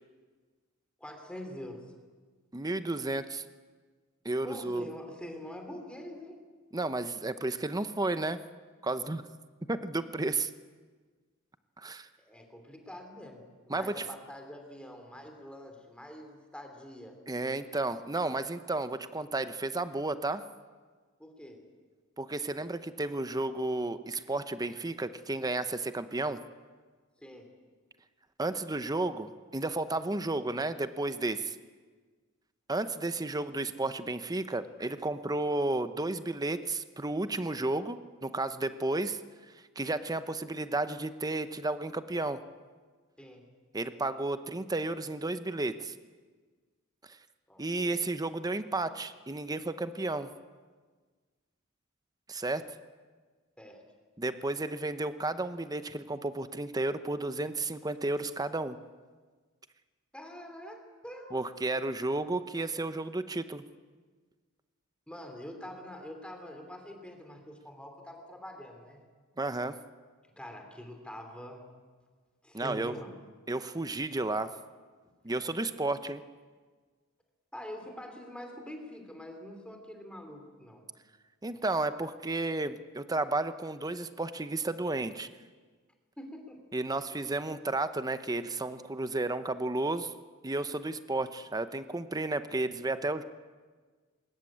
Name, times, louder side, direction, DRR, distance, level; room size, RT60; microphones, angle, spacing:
voice 1, 1.0-1.8 4.4-6.4 12.3-17.2 21.2-21.6 27.2-27.5 43.2-43.4 47.5-48.0 53.6-53.8 60.1-61.3 65.1-69.0 70.4-71.6 72.4-73.1 77.5-80.9 86.2-86.6, left 1 dB, 5° left, 4 dB, 3.1 m, -45 dB
voice 2, 2.5-3.4 4.2-4.9 6.7-8.4 8.8-9.2 9.7-10.5 11.8-12.1 13.7-14.1 17.3-20.4 22.2-26.4 28.4-31.6 32.7-39.2 39.8-42.4 43.7-45.9 47.1-47.2 47.6-50.3 52.3-52.6 54.2-58.8 61.3-63.6 69.4-69.8 72.5-73.0 73.5-74.5 75.2-76.2 81.4-85.3 86.7-90.1 90.4-93.2, right 2 dB, 20° right, 11 dB, 0.8 m, -32 dB
21.5 x 19.5 x 8.7 m, 1.5 s
head